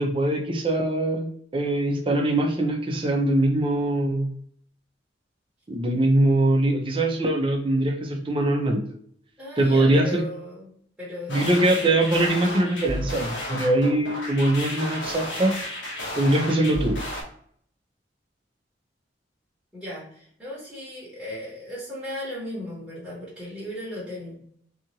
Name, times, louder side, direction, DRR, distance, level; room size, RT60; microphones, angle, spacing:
voice 1, 0.0-4.3 5.7-8.8 9.6-10.3 11.3-15.5 16.2-17.0, right 1 dB, 30° right, 2 dB, 0.5 m, -22 dB
voice 2, 9.4-11.8 19.7-24.6, equal, 5° right, -8 dB, 1.1 m, -36 dB
sound 1, 11.3-17.2, left 1 dB, 85° left, 1.0 m, -33 dB
2.8 x 2.4 x 2.8 m, 0.63 s
head